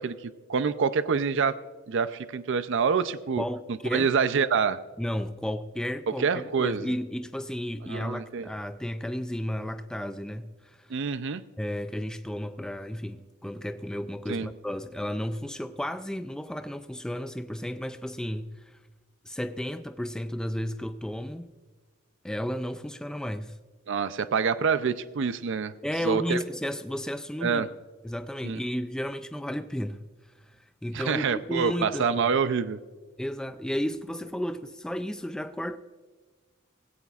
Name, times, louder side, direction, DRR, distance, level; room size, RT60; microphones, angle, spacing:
voice 1, 0.0-1.6 1.9-3.4 3.9-4.8 6.2-6.9 7.9-8.5 10.9-11.4 14.3-14.5 23.9-25.7 26.0-26.4 27.4-27.7 28.4-28.6 30.9-32.8, right 6 dB, 65° right, 0.5 m, -26 dB
voice 2, 3.4-4.1 5.0-11.0 11.6-18.8 19.2-21.5 22.2-23.6 25.8-27.6 28.0-30.0 30.4-30.6 30.8-32.3 33.2-35.8, equal, 5° left, 0.3 m, -33 dB
18.0 x 16.5 x 2.4 m
head